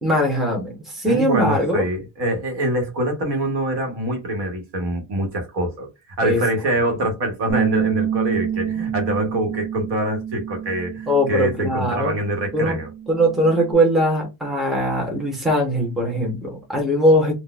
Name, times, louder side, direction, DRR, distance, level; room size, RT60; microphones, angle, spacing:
voice 1, 0.0-1.8 6.2-6.4 11.1-12.1 12.5-12.8 13.1-17.3, equal, ahead, 1.0 m, -20 dB
voice 2, 1.0-5.9 6.2-12.9, right 1 dB, 60° right, 1.4 m, -24 dB
Bass guitar, 7.5-13.7, right 9 dB, 20° right, 1.3 m, -28 dB
3.8 x 2.5 x 2.4 m
cardioid pair, 150°, 47 cm